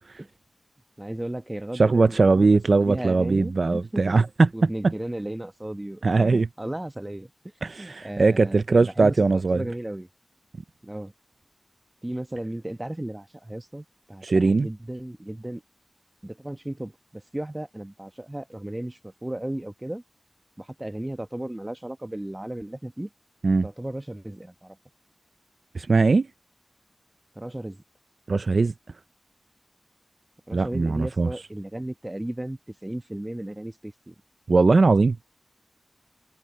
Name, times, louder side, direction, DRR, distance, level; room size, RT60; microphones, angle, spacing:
voice 1, 1.0-2.5 2.8-4.2 4.5-7.3 7.8-10.1 10.8-11.1 12.0-15.6 16.2-20.0 20.6-23.1 23.6-24.8 27.3-27.8 30.5-34.1, right 1 dB, 15° right, 1.0 m, -35 dB
voice 2, 1.7-4.9 6.0-6.5 7.6-9.6 14.2-14.7 23.4-23.7 25.7-26.3 28.3-28.7 30.5-31.3 34.5-35.2, right 3 dB, 60° right, 0.4 m, -20 dB
wide cardioid pair, 85°, 0 cm